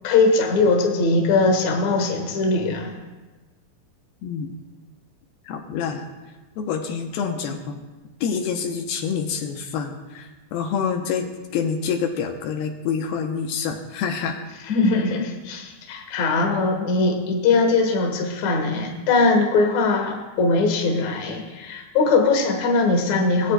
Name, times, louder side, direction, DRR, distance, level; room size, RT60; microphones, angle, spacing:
voice 1, 0.0-3.0 14.7-23.5, left 3 dB, 60° left, 2 dB, 2.0 m, -21 dB
voice 2, 4.2-4.6 5.4-6.1 6.6-7.9 8.2-11.3 11.5-14.4, left 6 dB, 80° left, 3 dB, 2.6 m, -27 dB
21.0 x 8.2 x 2.2 m, 1.2 s
omnidirectional pair, 4.4 m